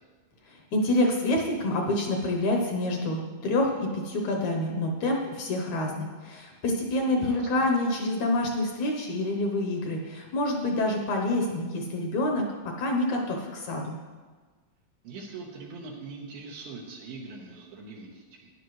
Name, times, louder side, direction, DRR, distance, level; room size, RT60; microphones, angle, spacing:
voice 1, 0.4-12.5 12.8-14.0, left 1 dB, 70° left, 1 dB, 2.0 m, -27 dB
voice 2, 7.2-7.7 15.0-18.5, right 4 dB, 85° right, -3 dB, 2.9 m, -42 dB
13.0 x 10.0 x 3.1 m, 1.4 s
omnidirectional pair, 4.0 m